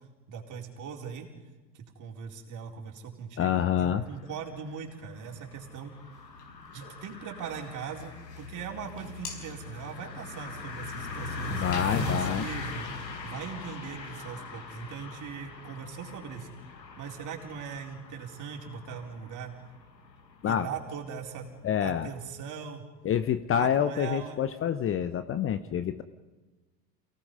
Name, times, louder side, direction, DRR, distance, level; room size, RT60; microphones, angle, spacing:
voice 1, 0.3-1.3 1.7-5.9 6.7-11.6 12.0-12.9 13.2-16.5 17.0-19.5 20.4-21.5 21.8-22.8 23.5-24.4, right 7 dB, 35° right, 1 dB, 4.3 m, -40 dB
voice 2, 3.4-4.0 11.6-12.4 20.4-20.7 21.6-22.1 23.0-26.0, left 9 dB, 25° left, 12 dB, 0.8 m, -27 dB
sound 1, 3.7-22.3, left 4 dB, 85° left, 2.0 m, -40 dB
sound 2, 6.1-7.0 7.5-13.0, left 5 dB, 70° left, 5.4 m, -47 dB
28.5 x 18.0 x 5.5 m, 1.2 s
figure-of-eight pair, 85°, 49 cm